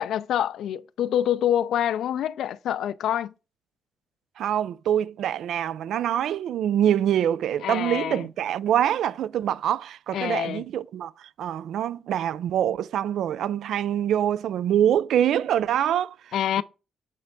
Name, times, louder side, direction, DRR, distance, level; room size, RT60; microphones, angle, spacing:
voice 1, 0.0-3.3 7.6-8.3 10.1-10.6 16.3-16.6, left 10 dB, 90° left, 0.4 m, -26 dB
voice 2, 4.4-11.1 11.4-16.2, right 10 dB, 90° right, 0.3 m, -25 dB
8.3 x 3.3 x 5.1 m
cardioid pair, 110°, 0 cm